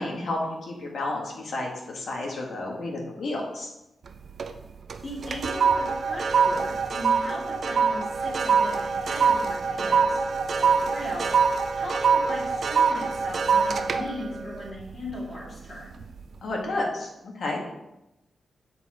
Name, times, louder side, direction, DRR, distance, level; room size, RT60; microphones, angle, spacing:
voice 1, 0.0-3.7 16.4-17.6, left 2 dB, 60° left, -1 dB, 1.7 m, -31 dB
sound 1, 4.1-4.6 4.9-15.5 15.9-16.2, right 5 dB, 50° right, 0.5 m, -24 dB
voice 2, 5.0-10.2 10.6-15.9, equal, 30° left, -5 dB, 2.4 m, -38 dB
6.9 x 4.5 x 4.8 m, 0.90 s
wide cardioid pair, 155°, 0 cm